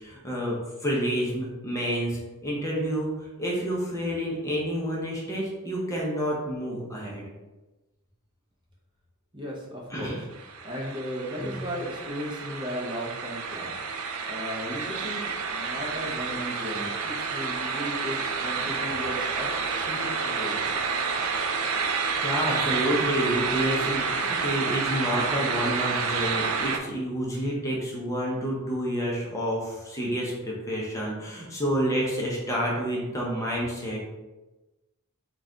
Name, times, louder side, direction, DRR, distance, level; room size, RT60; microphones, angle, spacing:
voice 1, 0.0-7.2 9.9-10.2 11.4-11.6 21.9-34.0, equal, 15° left, -4 dB, 0.7 m, -29 dB
voice 2, 9.3-10.2 10.6-13.8 14.3-19.5 19.7-20.7, equal, 20° right, -4 dB, 0.7 m, -36 dB
sound 1, 10.3-26.8, right 5 dB, 70° right, 0.4 m, -29 dB
4.0 x 2.4 x 3.7 m, 1.1 s
head